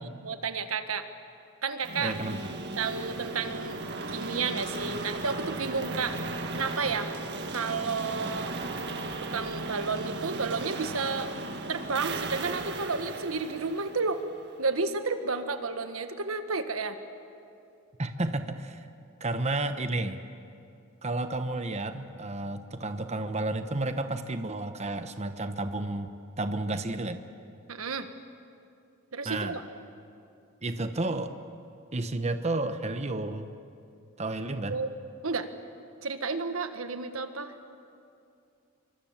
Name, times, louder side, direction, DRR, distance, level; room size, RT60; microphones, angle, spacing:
voice 1, 0.2-1.0 1.6-2.1 2.8-3.8 4.1-6.2 6.5-7.1 7.5-8.5 9.2-11.3 11.7-14.2 14.6-17.0 27.7-28.1 29.1-29.6 34.7-34.9 35.2-35.5 36.0-37.5, right 4 dB, 90° right, 8 dB, 1.5 m, -31 dB
sound 1, 1.8-14.7, right 2 dB, 55° right, 1.8 m, -36 dB
voice 2, 2.0-2.4 18.0-18.8 19.2-20.2 21.0-26.1 26.4-27.3 29.2-29.5 30.6-31.3 31.9-33.5 34.2-34.8, right 2 dB, 30° right, 9 dB, 1.0 m, -31 dB
26.5 x 24.0 x 7.4 m, 2.6 s
head